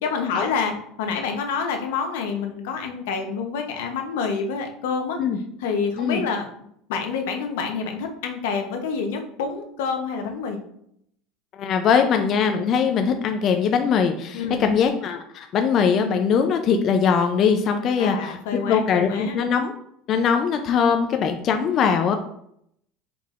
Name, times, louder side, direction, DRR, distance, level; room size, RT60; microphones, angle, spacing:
voice 1, 0.0-5.2 5.6-6.5 6.9-10.6 14.3-14.8 18.0-19.4, left 5 dB, 85° left, 4 dB, 0.8 m, -27 dB
voice 2, 11.5-18.4 18.7-19.7 20.1-22.2, left 6 dB, 40° left, 6 dB, 0.4 m, -21 dB
4.5 x 3.9 x 2.4 m, 0.71 s
supercardioid pair, 135°, 0 cm